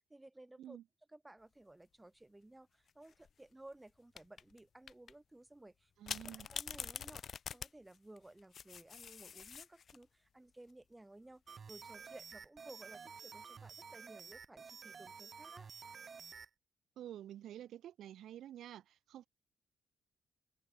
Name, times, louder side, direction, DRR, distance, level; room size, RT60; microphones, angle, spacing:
voice 1, 0.1-0.8 1.1-5.9 6.3-11.4 11.7-15.7, right 2 dB, 10° right, 1.4 m, -57 dB
sound 1, 2.9-3.3 4.2-4.6 4.9-5.1 6.1-10.0 11.7-12.1, left 7 dB, 55° left, 0.7 m, -45 dB
voice 2, 6.0-6.5 17.0-19.3, right 11 dB, 80° right, 2.0 m, -49 dB
sound 2, 11.5-16.5, right 6 dB, 45° right, 2.1 m, -51 dB
cardioid pair, 95°, 0 cm